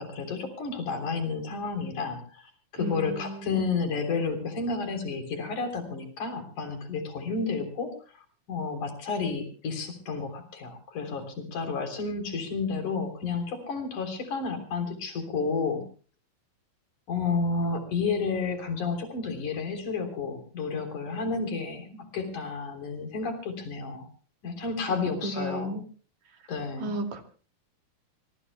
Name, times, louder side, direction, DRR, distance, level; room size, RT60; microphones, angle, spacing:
voice 1, 0.0-15.8 17.1-24.1 24.4-25.8 26.5-26.9, left 4 dB, 65° left, 7 dB, 4.9 m, -31 dB
voice 2, 2.8-3.6 25.2-25.8 26.8-27.2, right 1 dB, 65° right, 5 dB, 3.6 m, -33 dB
24.5 x 22.5 x 2.2 m, 0.39 s
omnidirectional pair, 3.7 m